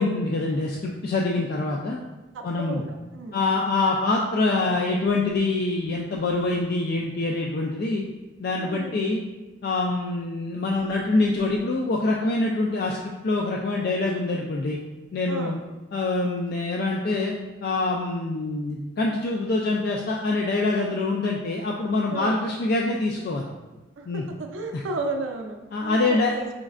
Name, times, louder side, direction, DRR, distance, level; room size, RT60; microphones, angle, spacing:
voice 1, 0.0-2.0 2.4-2.8 3.3-8.0 8.4-9.2 9.6-14.8 15.1-15.6 15.9-17.3 17.6-23.5 24.1-24.2 24.7-24.8 25.7-26.3, left 2 dB, 50° left, -1 dB, 0.3 m, -25 dB
voice 2, 2.3-3.4 8.6-9.0 15.3-15.6 22.1-22.3 24.0-26.5, right 3 dB, 90° right, 4 dB, 0.4 m, -33 dB
5.1 x 3.1 x 2.4 m, 1.1 s
head